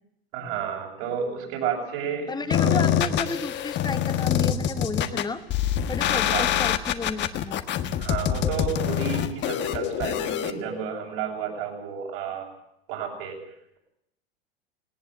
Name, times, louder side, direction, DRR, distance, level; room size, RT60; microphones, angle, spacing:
voice 1, 0.3-2.9 6.2-6.5 8.0-12.5 12.9-13.4, right 7 dB, 60° right, -2 dB, 7.4 m, -31 dB
voice 2, 2.3-5.4 5.9-7.6, left 4 dB, 15° left, 10 dB, 1.7 m, -32 dB
sound 1, 2.5-10.5, left 10 dB, 35° left, 1.6 m, -25 dB
19.0 x 18.5 x 8.9 m, 0.78 s
hypercardioid pair, 95°, 31 cm